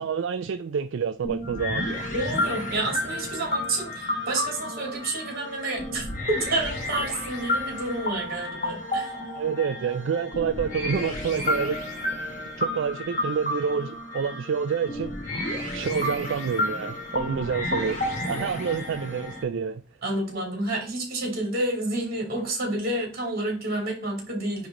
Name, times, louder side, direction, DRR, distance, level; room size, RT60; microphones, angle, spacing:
voice 1, 0.0-1.9 9.4-11.8 12.2-15.1 15.4-18.0 18.2-19.8, right 6 dB, 60° right, 0.3 m, -28 dB
sound 1, 1.2-19.4, left 1 dB, 35° left, 1.5 m, -31 dB
voice 2, 2.1-9.2 20.0-24.7, right 2 dB, 45° right, 2.6 m, -29 dB
9.3 x 3.1 x 3.7 m
head